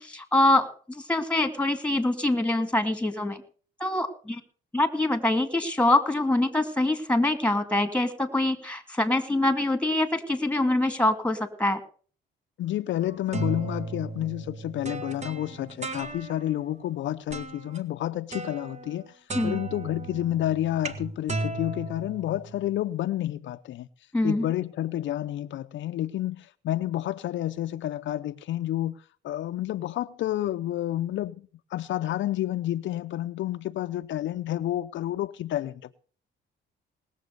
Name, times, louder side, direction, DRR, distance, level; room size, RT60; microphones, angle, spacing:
voice 1, 0.0-3.4 3.8-4.4 4.7-11.8 19.3-19.6 24.1-24.5, left 1 dB, 5° left, 2.2 m, -25 dB
voice 2, 12.6-19.1 19.4-23.9 24.2-29.0 29.2-35.9, left 13 dB, 70° left, 0.6 m, -30 dB
sound 1, 13.0-16.6 17.3-17.8 18.3-19.0 19.3-22.8, right 2 dB, 35° right, 1.6 m, -36 dB
19.0 x 7.2 x 6.7 m
cardioid pair, 90°, 20 cm